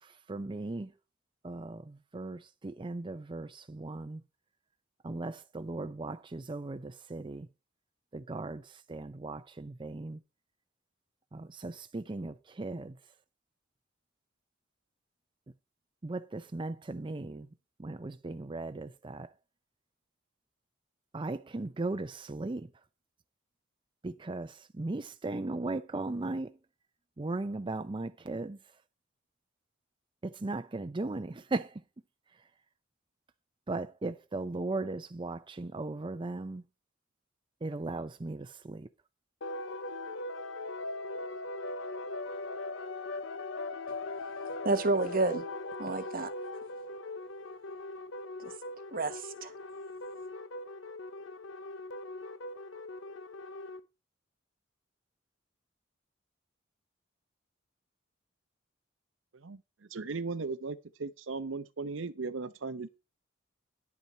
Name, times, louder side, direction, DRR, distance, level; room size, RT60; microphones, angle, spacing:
voice 1, 0.0-0.9 1.4-4.2 5.0-7.5 8.1-10.2 11.3-13.0 16.0-17.5 17.8-19.3 21.1-22.7 24.0-26.6 27.2-28.6 30.2-31.8 33.7-36.6 37.6-38.9, right 2 dB, 25° right, 0.5 m, -37 dB
sound 1, 39.4-53.8, left 2 dB, 85° left, 0.8 m, -40 dB
voice 2, 44.6-45.4 45.8-46.3 48.4-48.5 48.9-49.5, right 3 dB, 50° right, 1.2 m, -30 dB
voice 3, 59.9-62.9, right 4 dB, 90° right, 0.7 m, -37 dB
10.5 x 8.3 x 4.3 m
head